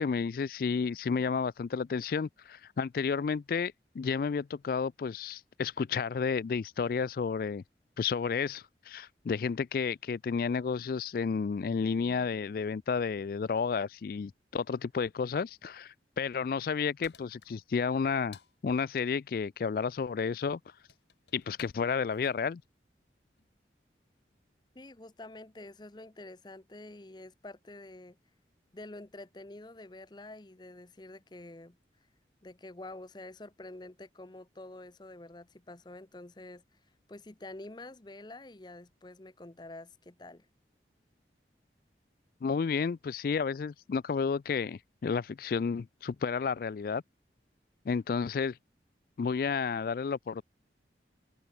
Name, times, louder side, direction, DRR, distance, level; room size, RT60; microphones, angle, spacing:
voice 1, 0.0-7.6 8.0-20.6 21.3-22.6 42.4-47.0 47.9-48.6 49.2-50.4, left 5 dB, 55° left, 0.3 m, -31 dB
sound 1, 17.0-23.6, left 7 dB, 80° left, 2.6 m, -59 dB
voice 2, 24.7-28.2 28.7-31.8 32.4-36.8 37.1-40.5, left 2 dB, 25° left, 0.8 m, -47 dB
head